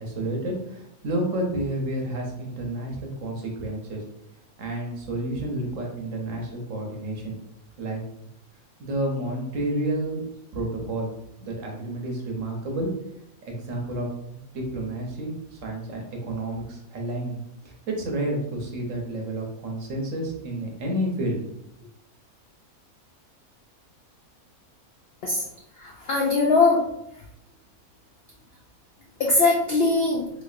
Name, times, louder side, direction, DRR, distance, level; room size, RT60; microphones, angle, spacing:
voice 1, 0.0-4.0 4.6-7.4 7.8-8.0 8.8-11.1 11.4-12.9 13.4-14.1 14.3-21.4, right 1 dB, 65° right, 1 dB, 1.0 m, -30 dB
voice 2, 25.8-26.8 29.2-30.3, left 3 dB, 75° left, -1 dB, 0.5 m, -21 dB
3.3 x 3.1 x 2.4 m, 0.78 s
omnidirectional pair, 1.6 m